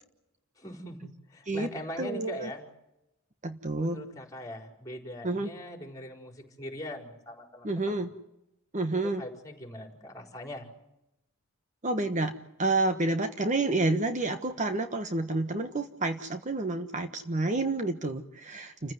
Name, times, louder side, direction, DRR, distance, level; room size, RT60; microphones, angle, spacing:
voice 1, 0.6-2.7 3.8-8.1 9.0-10.7, left 1 dB, 15° left, 4 dB, 4.8 m, -41 dB
voice 2, 2.0-2.5 3.4-4.0 5.2-5.5 7.6-8.1 8.7-9.2 11.8-12.3 12.6-18.9, right 2 dB, 35° right, 8 dB, 1.3 m, -29 dB
29.0 x 15.5 x 9.4 m, 0.88 s
head